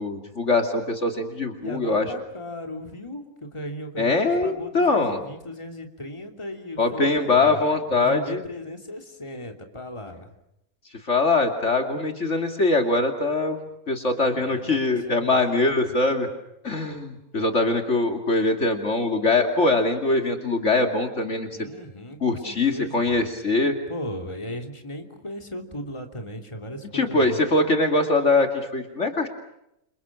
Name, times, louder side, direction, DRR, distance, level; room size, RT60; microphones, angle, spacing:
voice 1, 0.0-2.0 4.0-5.2 6.8-8.4 11.1-13.6 13.9-16.3 16.6-21.7 22.2-23.7 26.9-29.3, left 3 dB, 50° left, 5 dB, 2.8 m, -22 dB
voice 2, 1.6-7.6 7.9-10.3 14.3-15.7 21.5-23.2 23.9-27.4, left 1 dB, 20° left, 4 dB, 3.1 m, -37 dB
29.5 x 27.0 x 6.1 m, 0.84 s
omnidirectional pair, 1.5 m